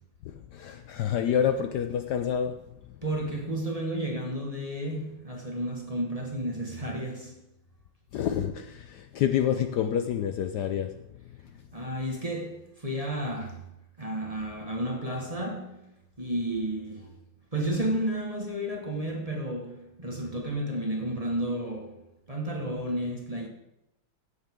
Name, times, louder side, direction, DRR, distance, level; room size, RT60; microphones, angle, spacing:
voice 1, 0.5-2.6 8.1-11.0, left 9 dB, 70° left, 1.1 m, -28 dB
voice 2, 3.0-7.5 11.7-13.6 14.0-15.9 16.2-17.1 17.5-23.5, right 1 dB, 20° right, 1.4 m, -32 dB
15.5 x 8.0 x 3.7 m
omnidirectional pair, 2.1 m